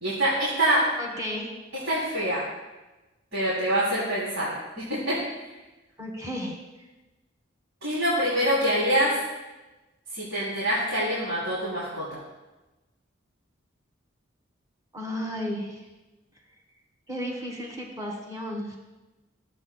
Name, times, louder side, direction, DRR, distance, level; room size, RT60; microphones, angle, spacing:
voice 1, 0.0-0.9 1.8-2.4 3.3-5.2 7.8-9.1 10.1-12.2, right 1 dB, 85° right, -9 dB, 2.9 m, -25 dB
voice 2, 1.0-1.5 6.0-6.6 14.9-15.8 17.1-18.8, equal, 20° right, 0 dB, 1.4 m, -33 dB
13.0 x 7.8 x 2.2 m, 1.1 s
head